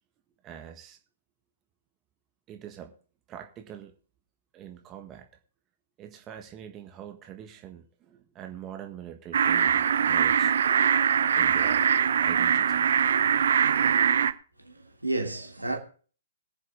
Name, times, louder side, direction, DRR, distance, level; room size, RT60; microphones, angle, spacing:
voice 1, 0.4-1.0 2.5-2.9 3.3-3.9 4.5-5.3 6.0-10.5 11.3-11.8 12.2-12.8, right 9 dB, 25° right, 1.7 m, -44 dB
sound 1, 9.3-14.3, right 8 dB, 60° right, 0.7 m, -22 dB
voice 2, 14.6-15.8, right 2 dB, 90° right, 2.6 m, -31 dB
21.5 x 7.4 x 3.7 m
figure-of-eight pair, 120°, 0 cm